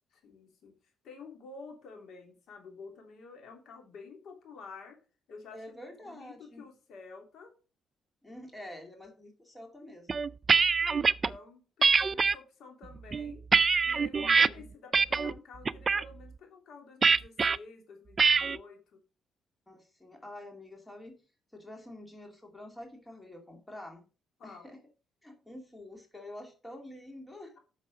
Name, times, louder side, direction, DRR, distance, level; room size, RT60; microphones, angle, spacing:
voice 1, 0.2-0.8 1.0-5.0 5.3-5.8 6.0-7.5 11.2-13.4 13.8-19.0 24.4-24.7, left 4 dB, 70° left, 3 dB, 3.0 m, -50 dB
voice 2, 5.5-6.6 8.2-10.3 14.2-14.6 19.7-21.2 21.5-24.1 24.4-24.8 25.2-27.6, left 1 dB, 15° left, 3 dB, 2.4 m, -47 dB
sound 1, 10.1-11.3 11.8-12.3 13.0-14.5 14.9-15.3 15.7-16.0 17.0-17.6 18.2-18.6, right 5 dB, 35° right, 0.4 m, -24 dB
8.2 x 6.6 x 4.9 m, 0.35 s
cardioid pair, 90°, 0 cm